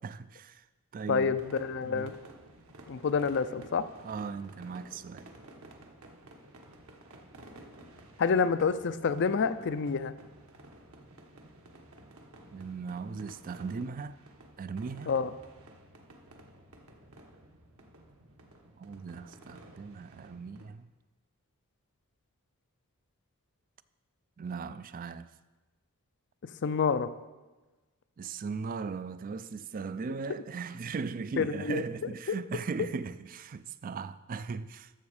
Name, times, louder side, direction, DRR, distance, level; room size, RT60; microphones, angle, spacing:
voice 1, 0.0-0.6 0.9-1.4 1.9-2.1 4.0-5.3 12.5-14.2 14.6-15.1 18.8-20.9 24.4-25.3 28.2-34.9, right 5 dB, 40° right, 0.3 m, -38 dB
voice 2, 1.1-2.1 2.9-3.9 8.2-10.1 15.1-15.3 26.4-27.1 31.4-31.8 32.3-32.4, left 5 dB, 55° left, 0.4 m, -28 dB
sound 1, 1.2-20.7, right 1 dB, 70° right, 1.3 m, -53 dB
12.5 x 6.9 x 4.9 m
head